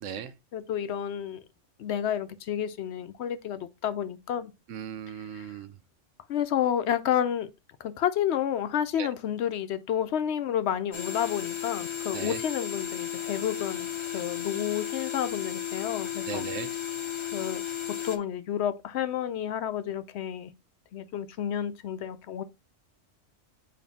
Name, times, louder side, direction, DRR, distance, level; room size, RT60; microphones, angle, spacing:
voice 1, 0.0-0.3 4.7-5.8 9.0-9.1 12.1-12.4 16.3-16.7, right 8 dB, 80° right, 1.0 m, -37 dB
voice 2, 0.5-1.4 1.8-4.5 5.1-5.6 6.3-7.5 7.8-16.5 17.3-17.6 17.9-20.5 20.9-22.4, left 10 dB, 65° left, 0.8 m, -30 dB
sound 1, 10.9-18.2, left 10 dB, 30° left, 0.6 m, -34 dB
7.2 x 5.0 x 2.7 m
omnidirectional pair, 1.3 m